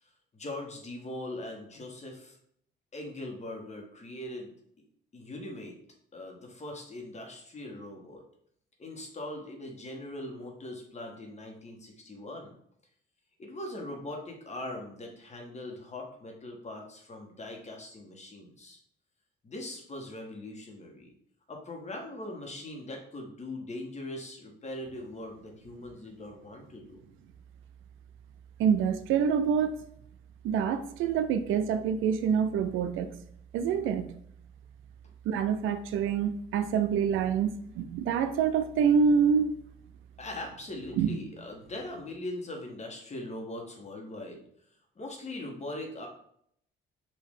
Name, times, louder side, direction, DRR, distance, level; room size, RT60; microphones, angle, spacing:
voice 1, 0.3-2.4 2.9-4.5 5.1-5.8 6.1-8.2 8.8-12.5 13.4-18.8 19.4-21.1 21.5-27.0 40.2-44.4 45.0-46.1, left 1 dB, 35° left, 1.3 m, -41 dB
voice 2, 28.6-29.9 30.4-33.2 33.5-34.1 35.3-39.5 41.0-41.1, right 7 dB, 85° right, 0.5 m, -26 dB
5.2 x 2.7 x 3.6 m
cardioid pair, 90°, 20 cm